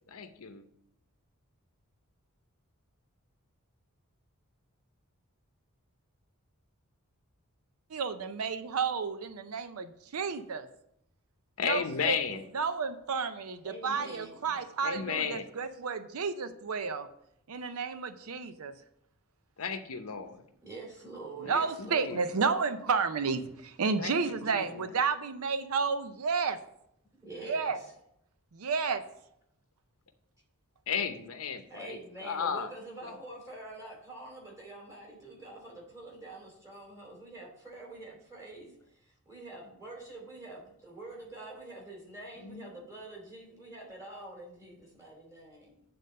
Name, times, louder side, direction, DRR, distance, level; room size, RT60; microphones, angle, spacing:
voice 1, 0.1-0.6 11.6-12.4 14.8-15.5 19.6-20.4 21.4-22.2 24.0-24.9 30.9-32.7 33.0-33.1 42.4-42.7, left 6 dB, 70° left, 8 dB, 0.7 m, -34 dB
voice 2, 7.9-10.7 11.6-12.2 12.5-17.1 17.5-18.7 21.4-26.6 27.5-27.8 28.5-29.0, right 5 dB, 75° right, 10 dB, 0.6 m, -31 dB
voice 3, 13.6-14.6 20.6-22.2 27.2-27.7 31.7-45.8, right 2 dB, 15° right, -3 dB, 2.8 m, -46 dB
8.5 x 3.9 x 6.5 m, 0.76 s
head